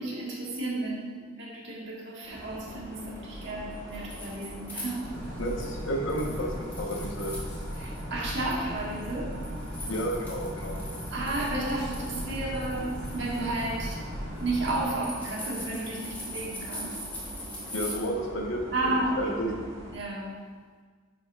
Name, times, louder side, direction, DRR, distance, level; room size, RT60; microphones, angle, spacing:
voice 1, 0.0-5.4 7.8-9.4 11.1-14.0 14.4-17.1 18.7-19.5 19.9-20.4, right 2 dB, 65° right, -4 dB, 1.5 m, -32 dB
sound 1, 2.2-19.9, equal, 30° right, 1.8 m, -44 dB
sound 2, 3.7-5.8 6.1-8.0 8.3-17.9, left 1 dB, 10° left, 1.7 m, -42 dB
sound 3, 5.0-14.9, equal, 55° left, 1.7 m, -37 dB
voice 2, 5.4-7.3 9.9-10.8 17.7-19.6, equal, 75° left, 0 dB, 1.0 m, -32 dB
10.5 x 5.0 x 2.4 m, 1.5 s
head